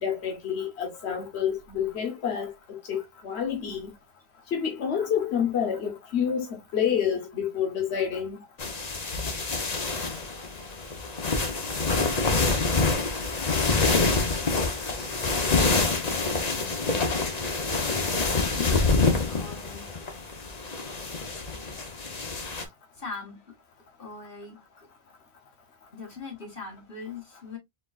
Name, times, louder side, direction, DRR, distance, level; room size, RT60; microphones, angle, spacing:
voice 1, 0.0-3.9 4.5-8.4, left 8 dB, 80° left, 1.3 m, -28 dB
sound 1, 8.6-22.6, left 3 dB, 40° left, 1.0 m, -26 dB
voice 2, 18.6-19.9 23.0-23.4 24.0-24.6 25.9-27.6, left 5 dB, 60° left, 2.2 m, -40 dB
4.4 x 3.9 x 2.4 m
omnidirectional pair, 1.1 m